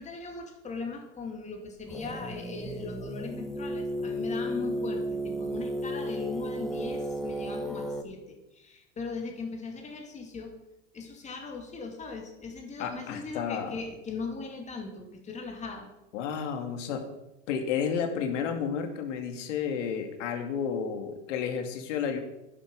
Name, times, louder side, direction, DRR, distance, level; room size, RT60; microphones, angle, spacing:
voice 1, 0.0-10.5 10.9-15.9, left 4 dB, 20° left, 3 dB, 2.3 m, -39 dB
sound 1, 1.9-8.0, equal, ahead, 0.7 m, -33 dB
voice 2, 12.8-13.8 16.1-17.1 17.5-22.2, left 7 dB, 80° left, 5 dB, 2.5 m, -31 dB
12.0 x 10.0 x 5.4 m, 0.93 s
supercardioid pair, 155°, 36 cm